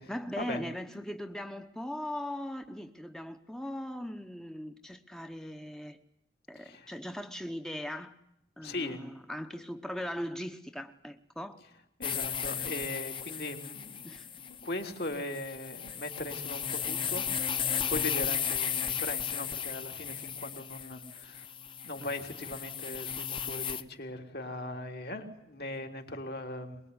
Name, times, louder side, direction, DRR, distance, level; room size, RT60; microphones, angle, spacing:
voice 1, 0.1-6.0 6.5-8.1 8.6-11.6 14.0-14.3 22.0-22.1, equal, 5° left, 7 dB, 1.0 m, -39 dB
voice 2, 6.6-6.9 8.6-9.1 12.0-17.5 17.9-21.5 21.8-26.8, left 2 dB, 60° left, 3 dB, 3.5 m, -39 dB
sound 1, 12.0-23.8, left 7 dB, 30° left, 1.1 m, -35 dB
23.5 x 22.0 x 9.8 m, 0.81 s
head